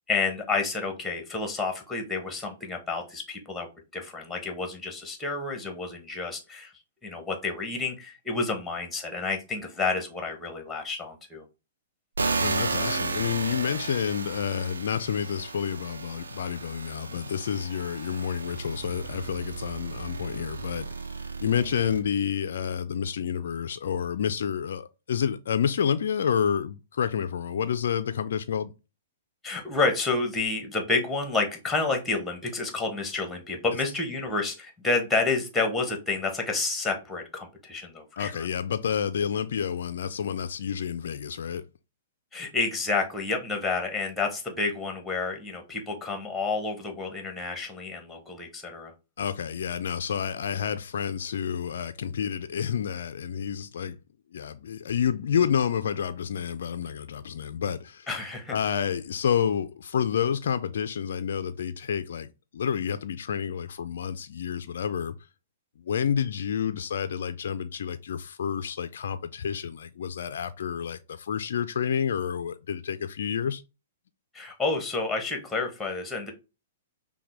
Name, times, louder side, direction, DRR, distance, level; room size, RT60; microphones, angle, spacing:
voice 1, 0.1-3.7 3.9-6.7 7.0-11.4 29.4-38.5 42.3-48.9 58.1-58.5 74.3-76.3, left 3 dB, 5° left, 1.1 m, -29 dB
sound 1, 12.2-22.0, right 4 dB, 75° right, 0.6 m, -34 dB
voice 2, 12.4-21.1 21.4-28.7 38.2-41.7 49.2-54.0 54.3-58.1 58.5-65.2 65.8-73.6, left 8 dB, 60° left, 0.3 m, -29 dB
5.6 x 2.2 x 3.2 m
figure-of-eight pair, 110°, 0 cm